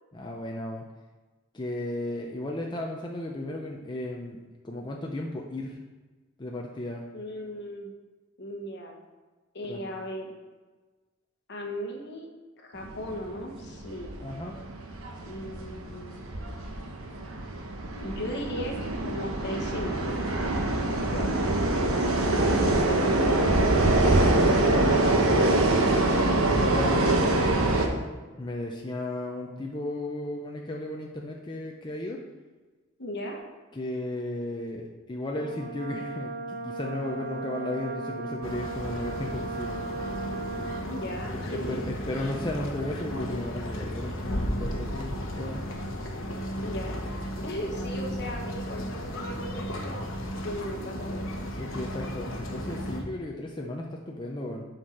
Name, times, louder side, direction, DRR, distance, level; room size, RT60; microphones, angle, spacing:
voice 1, 0.1-0.9 1.5-5.8 6.4-7.1 9.7-9.8 14.2-14.6 21.0-21.4 22.2-25.7 26.6-27.5 28.4-32.2 33.7-39.8 41.3-45.6 47.4-47.5 51.5-54.6, left 1 dB, 20° left, -1 dB, 0.6 m, -35 dB
voice 2, 7.1-7.9 8.4-9.0 9.5-10.4 11.5-12.3 12.6-14.2 15.2-16.2 18.0-20.3 33.0-33.4 40.8-41.8 46.6-47.0 47.4-50.1 50.4-51.3, equal, 55° left, 1 dB, 1.4 m, -37 dB
sound 1, 12.7-27.9, right 2 dB, 90° right, 1.0 m, -24 dB
Brass instrument, 35.4-41.2, right 3 dB, 50° right, 1.0 m, -37 dB
sound 2, 38.4-53.0, equal, 75° left, 1.1 m, -34 dB
7.8 x 4.4 x 5.9 m, 1.3 s
head